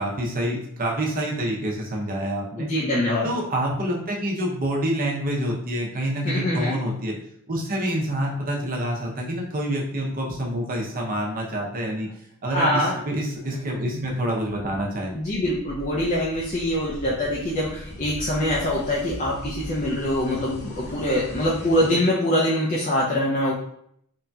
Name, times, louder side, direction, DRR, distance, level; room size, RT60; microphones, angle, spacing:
voice 1, 0.0-2.7 3.2-7.1 7.5-12.1 12.4-15.1, right 1 dB, 40° right, -1 dB, 0.6 m, -27 dB
voice 2, 2.6-3.3 6.2-6.7 12.5-13.0 13.5-14.0 15.1-23.5, left 1 dB, 35° left, -5 dB, 0.4 m, -24 dB
sound 1, 15.3-22.1, left 1 dB, 85° left, 0.7 m, -39 dB
3.0 x 2.6 x 2.2 m, 0.70 s
head